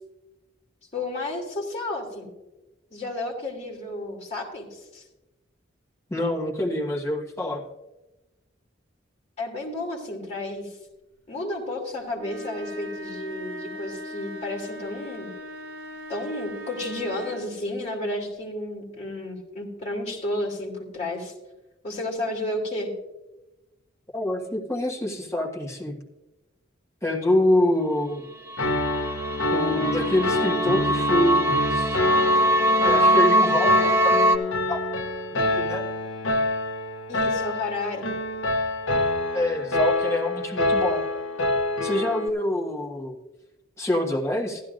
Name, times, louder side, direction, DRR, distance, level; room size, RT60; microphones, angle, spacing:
voice 1, 0.9-2.3 2.9-5.0 9.4-10.8 11.3-15.3 16.1-21.3 21.8-22.9 37.1-38.1, left 1 dB, 35° left, -2 dB, 2.7 m, -32 dB
voice 2, 6.1-7.6 24.1-26.0 27.0-28.3 29.5-32.0 32.8-34.2 34.7-34.9 35.3-35.8 39.3-41.0 41.8-43.2 43.8-44.6, left 1 dB, 15° left, -2 dB, 1.4 m, -26 dB
sound 1, 12.1-17.6, left 1 dB, 75° right, 3.3 m, -39 dB
sound 2, 28.5-34.4, right 1 dB, 15° right, 0.6 m, -22 dB
Piano, 28.6-42.3, left 2 dB, 80° left, 0.7 m, -26 dB
15.0 x 12.0 x 2.5 m, 1.0 s
head